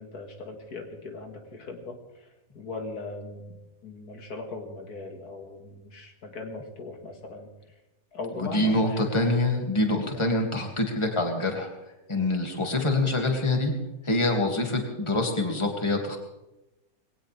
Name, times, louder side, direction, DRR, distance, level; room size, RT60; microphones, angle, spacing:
voice 1, 0.0-2.3 2.5-3.5 3.8-7.5 8.1-9.1 10.1-10.4, left 3 dB, 75° left, 4 dB, 2.3 m, -39 dB
voice 2, 8.4-11.7 12.1-13.7 14.0-16.2, left 2 dB, 20° left, 2 dB, 2.3 m, -25 dB
21.0 x 18.0 x 3.4 m, 0.97 s
omnidirectional pair, 1.6 m